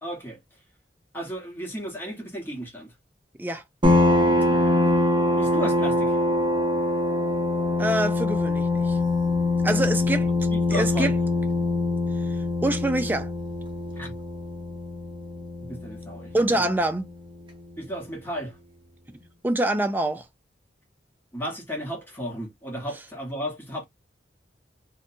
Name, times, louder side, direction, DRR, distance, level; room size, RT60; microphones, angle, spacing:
voice 1, 0.0-0.4 1.1-2.9 4.4-4.7 5.4-6.2 10.5-11.1 14.0-14.2 15.6-16.6 17.8-18.6 21.3-23.8, equal, 10° left, 1.0 m, -34 dB
sound 1, 3.8-17.1, left 2 dB, 30° right, 0.8 m, -24 dB
voice 2, 7.8-9.0 9.6-10.3 10.7-11.1 12.6-13.3 16.3-17.1 19.4-20.2, right 1 dB, 10° right, 0.4 m, -25 dB
2.6 x 2.2 x 2.7 m
head